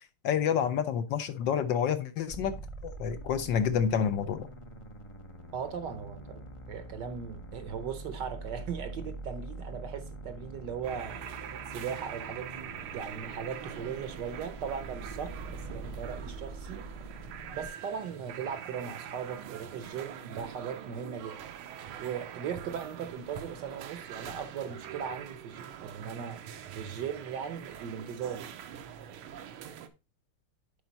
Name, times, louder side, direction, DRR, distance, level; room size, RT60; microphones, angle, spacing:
voice 1, 0.2-2.5 2.8-4.5, left 7 dB, 70° left, 1.2 m, -28 dB
sound 1, 2.3-17.7, right 2 dB, 40° left, 0.4 m, -44 dB
voice 2, 5.5-11.2 11.7-16.8 17.5-21.4 22.0-26.4 26.7-28.5, right 7 dB, 65° right, 1.3 m, -38 dB
sound 2, 10.8-29.9, right 9 dB, 80° right, 1.7 m, -44 dB
10.5 x 4.5 x 4.0 m
omnidirectional pair, 2.3 m